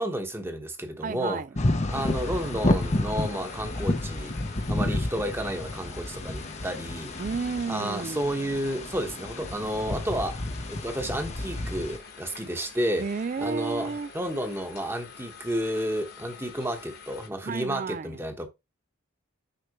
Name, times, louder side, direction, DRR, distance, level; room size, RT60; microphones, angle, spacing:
voice 1, 0.0-1.5 1.9-4.3 4.7-7.1 7.7-10.4 10.7-13.1 13.4-18.5, equal, 10° right, 1.1 m, -31 dB
voice 2, 1.0-1.5 7.2-8.3 13.0-14.1 17.4-18.2, right 4 dB, 40° right, 0.3 m, -32 dB
sound 1, 1.6-12.0, left 1 dB, 30° left, 0.8 m, -30 dB
sound 2, 1.9-17.3, left 5 dB, 50° left, 1.5 m, -47 dB
6.7 x 5.8 x 3.0 m
head